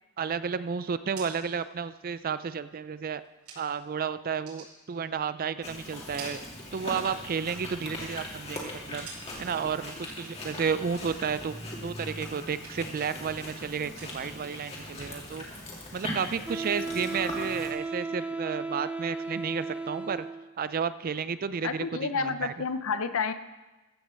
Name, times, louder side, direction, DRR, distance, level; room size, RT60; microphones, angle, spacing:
voice 1, 0.2-3.2 3.6-6.4 6.7-9.1 9.4-11.6 11.8-15.5 15.9-20.3 20.6-22.5, right 6 dB, 40° right, 14 dB, 0.4 m, -32 dB
sound 1, 0.9-3.9 4.3-5.6 5.9-7.2 7.5-9.7 10.1-10.5 10.9-12.2 12.4-13.1 13.3-16.2, right 4 dB, 85° right, 5.5 m, -51 dB
Chewing mastication, 5.6-17.7, left 1 dB, 30° left, 2.6 m, -40 dB
Wind instrument woodwind instrument, 16.5-20.6, right 3 dB, 5° right, 0.7 m, -35 dB
voice 2, 21.6-23.3, left 5 dB, 65° left, 11 dB, 0.7 m, -30 dB
14.5 x 6.4 x 7.5 m, 1.1 s
head